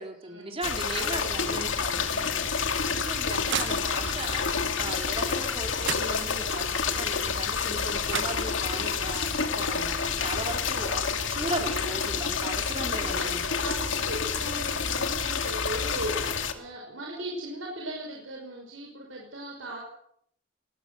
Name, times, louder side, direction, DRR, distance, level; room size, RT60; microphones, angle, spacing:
voice 1, 0.0-13.7, right 2 dB, 30° right, 3 dB, 3.5 m, -37 dB
sound 1, 0.6-16.5, left 5 dB, 75° left, 2.4 m, -29 dB
voice 2, 0.9-1.4 12.9-19.8, right 1 dB, 90° right, -1 dB, 5.7 m, -38 dB
sound 2, 2.9-4.3 5.4-5.5 5.8-6.6 7.8-7.9 8.1-8.9, right 8 dB, 65° right, 1.1 m, -36 dB
20.0 x 19.5 x 8.1 m, 0.70 s
head